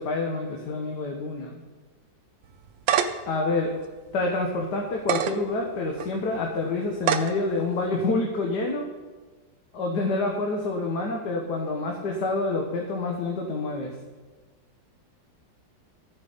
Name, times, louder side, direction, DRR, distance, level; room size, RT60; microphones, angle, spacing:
voice 1, 0.0-1.6 3.3-3.8 4.1-8.8 9.7-13.9, left 2 dB, 65° left, 0 dB, 1.7 m, -27 dB
sound 1, 2.5-3.3 3.8-3.9 4.9-5.3 6.0-6.1 7.0-7.3, right 9 dB, 85° right, 1.4 m, -24 dB
12.5 x 8.2 x 5.0 m, 1.3 s
omnidirectional pair, 2.0 m